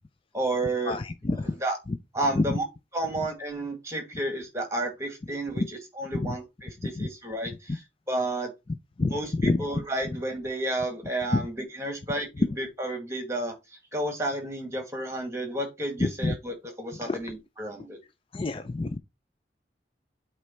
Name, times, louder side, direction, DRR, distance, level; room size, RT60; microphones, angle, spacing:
voice 1, 0.3-1.8 2.1-2.6 2.9-8.5 9.1-13.6 13.9-18.0, right 1 dB, 15° right, 2.0 m, -32 dB
voice 2, 18.3-19.0, left 2 dB, 30° left, 0.4 m, -26 dB
8.2 x 3.2 x 4.5 m
head